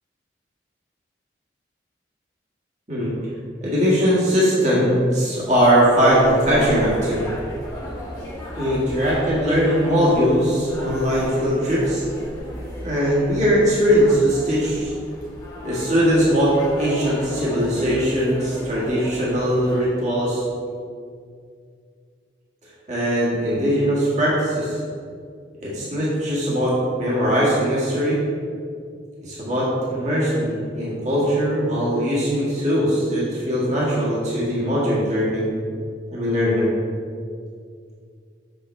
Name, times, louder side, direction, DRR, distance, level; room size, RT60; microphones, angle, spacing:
voice 1, 3.6-7.2 8.5-12.0 12.8-14.9 15.6-20.4 22.9-24.8 25.6-28.2 29.2-35.5 36.1-36.7, equal, 40° right, -7 dB, 1.8 m, -20 dB
sound 1, 5.4-19.9, equal, 20° left, 1.6 m, -36 dB
6.9 x 6.8 x 3.2 m, 2.2 s
head